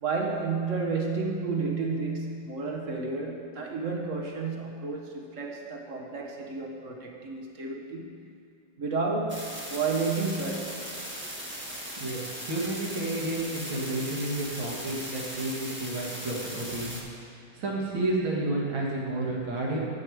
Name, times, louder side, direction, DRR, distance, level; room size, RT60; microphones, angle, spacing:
voice 1, 0.0-8.2 8.8-10.8, right 4 dB, 50° right, 1 dB, 1.1 m, -31 dB
sound 1, 9.3-17.0, equal, 5° right, 1.1 m, -38 dB
voice 2, 12.0-17.0 17.5-19.8, right 2 dB, 75° right, -3 dB, 2.5 m, -31 dB
11.0 x 7.7 x 4.6 m, 2.3 s
omnidirectional pair, 2.2 m